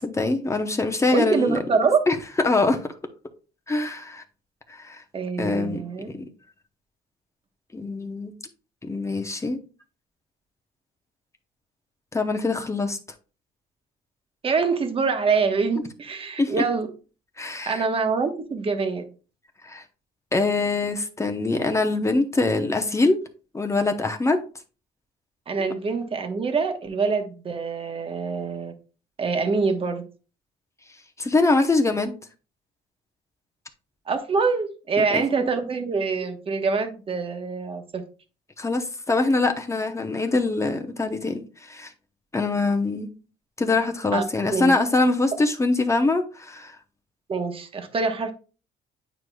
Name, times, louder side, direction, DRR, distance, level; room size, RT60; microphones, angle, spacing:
voice 1, 0.0-1.6 2.1-2.2 2.4-2.8 3.7-4.2 4.7-5.0 5.4-5.8 7.7-8.3 8.8-9.6 12.1-13.0 16.4-16.5 17.4-17.8 19.6-19.8 20.3-23.2 23.5-24.4 25.6-25.7 31.2-32.1 35.0-35.2 38.6-41.4 41.7-41.9 42.3-43.1 43.6-46.7, left 3 dB, 15° left, 5 dB, 0.8 m, -23 dB
voice 2, 1.1-2.0 5.1-6.1 14.4-16.9 17.7-19.0 25.5-28.7 29.2-30.0 34.1-38.0 44.1-44.2 44.5-44.7 47.3-48.3, right 4 dB, 35° right, 6 dB, 1.1 m, -25 dB
9.1 x 4.7 x 2.3 m, 0.35 s
cardioid pair, 110°, 17 cm